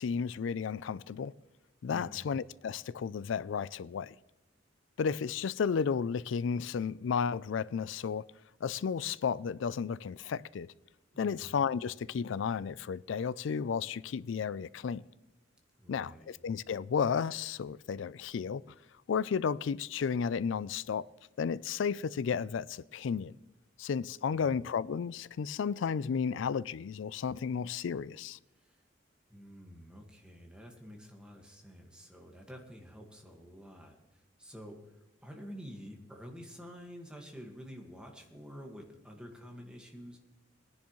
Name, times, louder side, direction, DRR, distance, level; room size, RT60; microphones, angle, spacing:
voice 1, 0.0-1.3 1.8-4.2 5.0-8.2 8.6-10.7 11.2-15.0 15.9-18.6 19.1-21.0 21.4-23.4 23.8-28.4, left 6 dB, 70° left, 0.4 m, -33 dB
voice 2, 1.9-2.3 11.1-11.5 15.8-16.4 28.5-28.8 29.3-34.9 35.2-40.2, equal, 5° right, 1.7 m, -49 dB
19.5 x 10.5 x 3.1 m
head